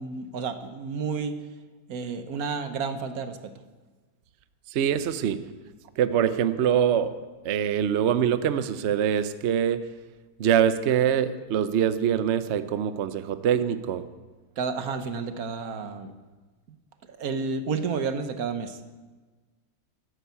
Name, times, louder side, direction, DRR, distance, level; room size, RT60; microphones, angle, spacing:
voice 1, 0.0-1.4 1.9-3.5 14.6-16.1 17.1-18.8, right 5 dB, 55° right, 9 dB, 1.3 m, -31 dB
voice 2, 4.7-5.4 6.0-7.1 7.4-9.8 10.4-14.0, right 9 dB, 85° right, 12 dB, 0.6 m, -24 dB
13.0 x 10.0 x 8.2 m, 1.3 s
omnidirectional pair, 2.2 m